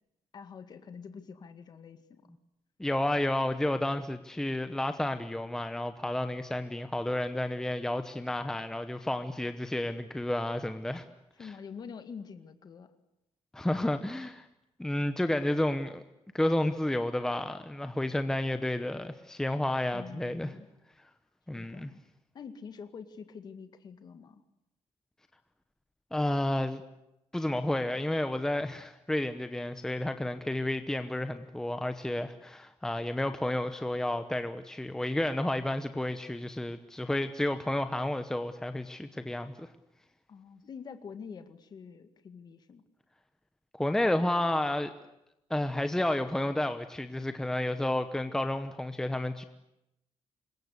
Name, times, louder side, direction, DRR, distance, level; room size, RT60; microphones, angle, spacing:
voice 1, 0.3-2.2 11.4-12.9 19.9-20.7 21.6-22.0 22.3-24.4 40.3-42.8, left 6 dB, 40° left, 10 dB, 2.0 m, -46 dB
voice 2, 2.8-11.0 11.4-11.5 13.5-14.5 14.8-16.0 16.3-20.5 21.5-21.9 26.1-26.8 27.3-39.7 43.7-44.9 45.5-49.4, left 1 dB, 5° left, 9 dB, 0.9 m, -31 dB
26.5 x 22.5 x 8.3 m, 0.87 s
cardioid pair, 180°, 11 cm